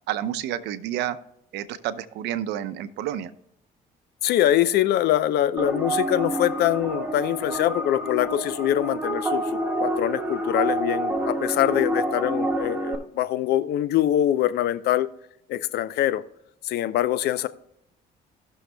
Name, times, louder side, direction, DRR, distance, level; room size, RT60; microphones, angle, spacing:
voice 1, 0.1-1.2 1.5-3.3, right 11 dB, 85° right, 13 dB, 0.7 m, -29 dB
voice 2, 4.2-9.4 9.8-15.1 15.5-16.2 16.6-17.5, left 12 dB, 70° left, 15 dB, 0.6 m, -23 dB
sound 1, 5.6-12.9, right 1 dB, 10° right, 1.7 m, -28 dB
18.0 x 6.5 x 2.2 m, 0.80 s
cardioid pair, 110°, 17 cm